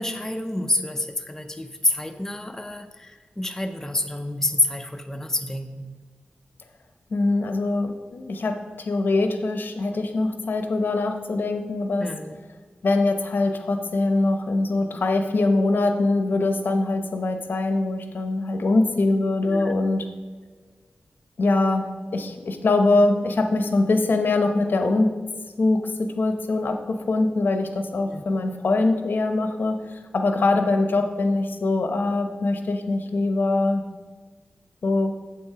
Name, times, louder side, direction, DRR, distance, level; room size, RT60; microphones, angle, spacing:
voice 1, 0.0-5.9 12.0-12.4 19.5-19.7 28.1-28.2, left 2 dB, 15° left, 5 dB, 0.6 m, -28 dB
voice 2, 7.1-8.6 8.9-12.1 12.8-20.0 21.4-21.9 22.1-25.1 25.6-33.8 34.8-35.1, left 2 dB, 70° left, 6 dB, 0.9 m, -23 dB
7.7 x 7.0 x 4.9 m, 1.4 s
wide cardioid pair, 100°, 4 cm